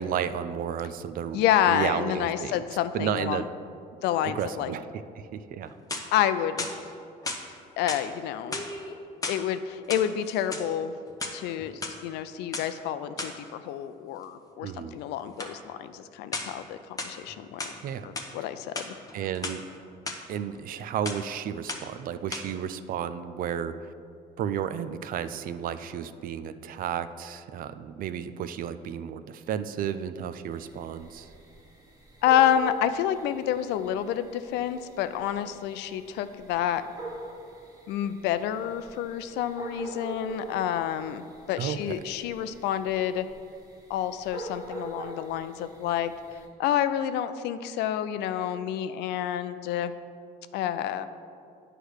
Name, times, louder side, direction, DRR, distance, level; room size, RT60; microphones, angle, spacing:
voice 1, 0.0-2.6 2.9-3.5 4.2-4.9 5.2-5.7 14.6-15.0 17.8-18.1 19.1-19.6 20.3-23.7 24.4-31.3 41.6-42.0, right 9 dB, 55° right, 12 dB, 0.4 m, -32 dB
voice 2, 1.3-3.5 4.0-4.7 6.1-6.7 7.8-8.6 9.3-10.9 11.3-17.6 18.0-18.9 32.2-36.8 37.9-43.3 43.9-49.9 50.5-51.1, left 10 dB, 85° left, 11 dB, 0.4 m, -28 dB
sound 1, 5.6-6.2 6.6-7.4 7.9-8.1 8.4-9.4 9.8-10.7 11.1-11.9 12.5-12.7 13.2-13.4 15.4-15.6 16.3-16.6 17.0-17.8 18.1-18.3 18.6-19.6 20.1-20.2 20.5-20.8 21.0-21.3 21.7-22.0 22.3-22.4, left 3 dB, 20° left, 0.8 m, -35 dB
sound 2, 30.5-46.5, right 2 dB, 20° right, 1.2 m, -44 dB
9.3 x 3.3 x 6.3 m, 2.5 s
cardioid pair, 110°, 17 cm